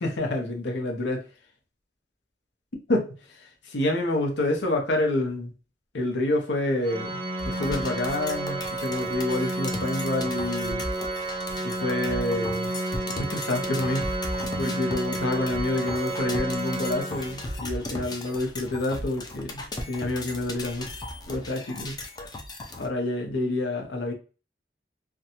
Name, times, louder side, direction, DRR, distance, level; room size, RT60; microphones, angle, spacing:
voice 1, 0.0-1.2 2.9-5.5 5.9-10.8 11.6-12.7 13.1-14.1 14.6-20.9 21.3-22.0 22.8-24.1, left 1 dB, 80° left, 2 dB, 0.7 m, -28 dB
Organ, 6.8-17.6, right 2 dB, 30° right, 0.5 m, -31 dB
sound 1, 7.4-22.9, left 1 dB, 25° left, 0.4 m, -37 dB
2.6 x 2.2 x 2.8 m, 0.35 s
head